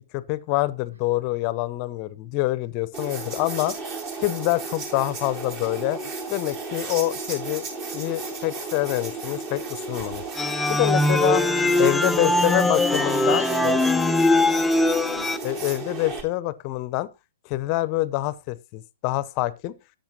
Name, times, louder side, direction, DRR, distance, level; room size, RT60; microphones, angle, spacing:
voice 1, 0.1-3.7 4.2-6.0 6.3-7.6 7.9-10.2 10.7-11.4 11.8-13.8 15.4-17.1 17.4-19.7, left 17 dB, 35° left, 0.8 m, -26 dB
sound 1, 2.9-16.2, right 3 dB, 35° right, 3.3 m, -34 dB
sound 2, 10.4-15.4, left 1 dB, 5° left, 0.5 m, -21 dB
voice 2, 11.4-12.5 13.3-14.7 15.1-15.4, right 2 dB, 80° right, 3.7 m, -40 dB
13.0 x 8.8 x 2.9 m
figure-of-eight pair, 115°, 0 cm